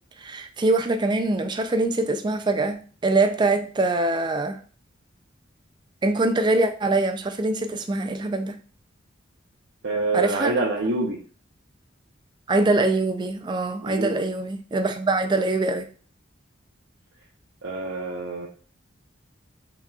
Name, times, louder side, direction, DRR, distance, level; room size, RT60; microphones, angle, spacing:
voice 1, 0.2-4.6 6.0-8.6 10.1-10.5 12.5-15.9, right 2 dB, 25° right, 0.3 m, -23 dB
voice 2, 9.8-11.2 13.8-14.2 17.6-18.5, right 2 dB, 75° right, 0.7 m, -26 dB
5.8 x 2.9 x 2.3 m
head